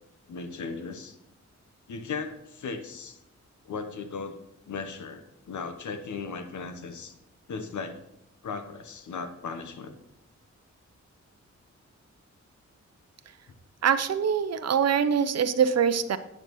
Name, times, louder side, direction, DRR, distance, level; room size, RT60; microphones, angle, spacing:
voice 1, 0.3-1.2 1.9-3.2 3.6-7.1 7.5-8.0 8.4-10.0, left 4 dB, 85° left, 8 dB, 1.0 m, -37 dB
voice 2, 13.8-16.2, right 7 dB, 60° right, 12 dB, 0.6 m, -24 dB
12.0 x 8.7 x 3.1 m, 0.84 s
wide cardioid pair, 180°, 29 cm